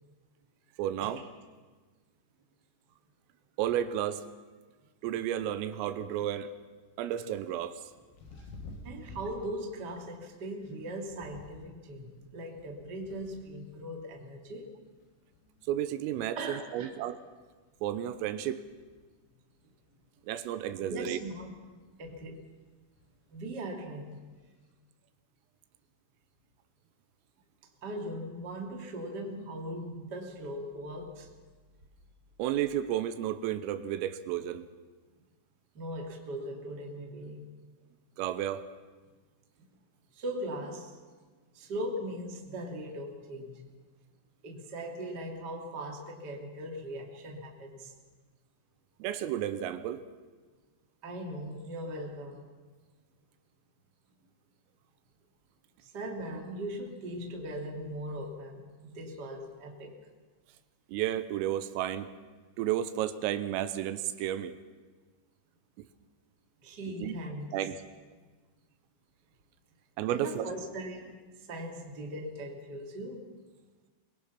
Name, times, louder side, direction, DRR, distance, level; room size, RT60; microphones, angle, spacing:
voice 1, 0.8-1.2 3.6-4.2 5.0-6.5 7.0-7.8 15.7-17.2 17.8-18.6 20.3-21.2 32.4-34.7 38.2-38.6 49.0-50.0 60.9-62.1 62.6-64.5 67.0-67.2 67.5-67.8 70.0-70.5, right 11 dB, 85° right, 11 dB, 3.5 m, -32 dB
sound 1, 5.9-24.7, left 2 dB, 90° left, 5.0 m, -55 dB
voice 2, 8.8-14.7 16.3-16.9 20.8-21.5 22.0-22.4 23.3-24.2 27.8-31.3 35.7-37.4 40.1-41.0 41.5-43.7 44.4-47.9 51.0-52.4 55.8-58.6 58.9-59.9 66.6-67.5 70.1-71.2 71.5-73.3, right 1 dB, 30° right, 0 dB, 2.1 m, -39 dB
25.0 x 21.5 x 5.8 m, 1.4 s
omnidirectional pair, 5.9 m